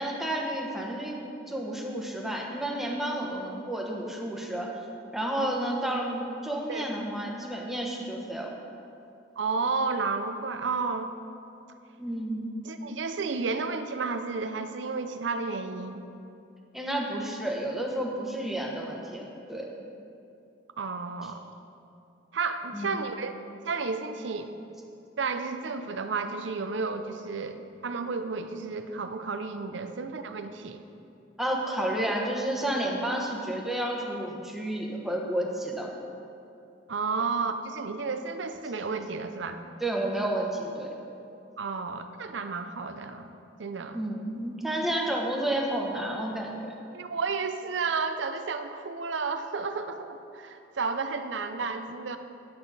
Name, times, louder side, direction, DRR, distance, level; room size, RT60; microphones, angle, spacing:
voice 1, 0.0-4.7 5.1-8.5 12.0-12.4 16.7-19.2 19.5-19.7 22.7-23.0 31.4-35.9 39.8-40.9 43.9-46.7, right 1 dB, ahead, -1 dB, 1.0 m, -31 dB
voice 2, 9.4-11.1 12.6-16.0 20.8-21.4 22.3-23.3 23.6-24.5 25.2-30.8 36.9-39.6 41.6-43.3 43.6-44.0 46.9-52.2, right 4 dB, 70° right, 8 dB, 0.6 m, -32 dB
10.5 x 7.9 x 4.0 m, 2.7 s
head